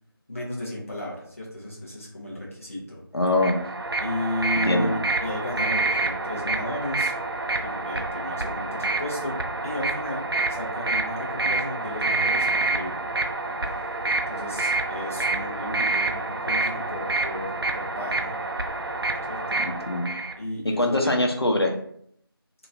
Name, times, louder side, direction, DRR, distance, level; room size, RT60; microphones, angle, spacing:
voice 1, 0.3-3.0 4.0-7.1 7.5-9.4 9.6-13.0 13.7-14.0 14.3-18.4 19.3-19.6 20.4-21.3, left 1 dB, 35° left, -4 dB, 1.0 m, -34 dB
voice 2, 3.1-3.5 4.7-4.9 19.6-20.1 20.6-21.7, left 1 dB, 90° left, 1 dB, 0.8 m, -23 dB
sound 1, 3.3-20.4, right 3 dB, 70° right, 0.5 m, -27 dB
2.9 x 2.9 x 3.6 m, 0.67 s
figure-of-eight pair, 170°, 13 cm